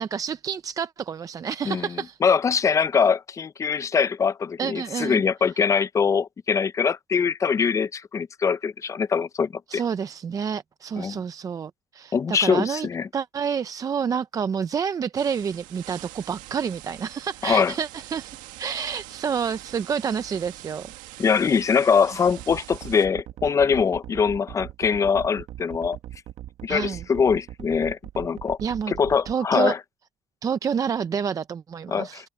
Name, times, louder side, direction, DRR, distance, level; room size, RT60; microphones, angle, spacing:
voice 1, 0.0-2.2 4.6-5.2 9.7-12.9 13.1-20.9 26.7-27.0 28.6-28.9 29.3-29.7 30.4-32.3, right 7 dB, 25° right, 0.5 m, -28 dB
voice 2, 2.2-9.8 11.0-11.2 12.1-13.1 17.4-17.7 21.2-26.0 26.6-28.6 28.9-29.8 31.9-32.3, left 6 dB, 25° left, 0.5 m, -23 dB
sound 1, 15.2-23.1, right 17 dB, 90° right, 1.8 m, -44 dB
sound 2, 22.3-29.4, right 13 dB, 60° right, 1.3 m, -40 dB
cardioid pair, 145°, 13 cm